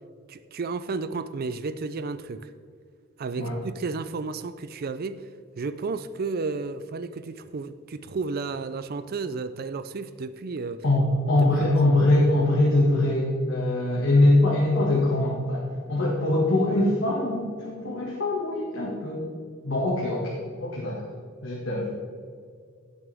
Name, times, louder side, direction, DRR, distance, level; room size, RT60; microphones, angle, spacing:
voice 1, 0.3-2.5 3.2-5.2 5.6-10.8 11.4-11.7, right 4 dB, 50° right, 13 dB, 0.4 m, -32 dB
voice 2, 10.8-15.6 15.9-19.2 19.6-21.1 21.4-21.9, left 1 dB, 65° left, -4 dB, 1.9 m, -23 dB
17.0 x 7.0 x 3.5 m, 2.2 s
head